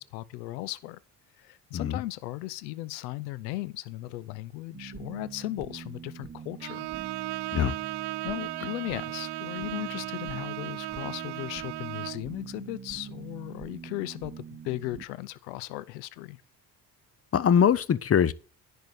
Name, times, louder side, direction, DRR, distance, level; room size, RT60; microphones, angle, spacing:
voice 1, 0.1-1.0 1.4-6.9 8.2-16.4, left 18 dB, 80° left, 0.6 m, -37 dB
sound 1, 4.7-15.0, right 6 dB, 20° right, 0.9 m, -44 dB
Bowed string instrument, 6.6-12.3, right 19 dB, 55° right, 0.5 m, -36 dB
voice 2, 17.3-18.3, left 8 dB, 30° left, 0.7 m, -22 dB
10.5 x 4.5 x 6.5 m
hypercardioid pair, 50°, 49 cm